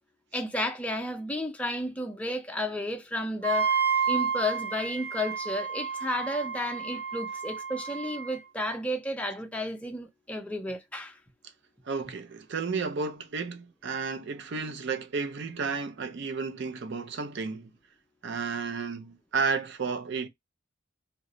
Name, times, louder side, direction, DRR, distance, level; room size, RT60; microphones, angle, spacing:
voice 1, 0.3-3.7 4.1-11.2, left 1 dB, 5° left, 0.5 m, -32 dB
Wind instrument woodwind instrument, 3.4-8.4, right 6 dB, 80° right, 1.0 m, -30 dB
voice 2, 11.8-17.7 18.2-20.3, right 5 dB, 60° right, 0.5 m, -32 dB
3.0 x 2.0 x 3.7 m
head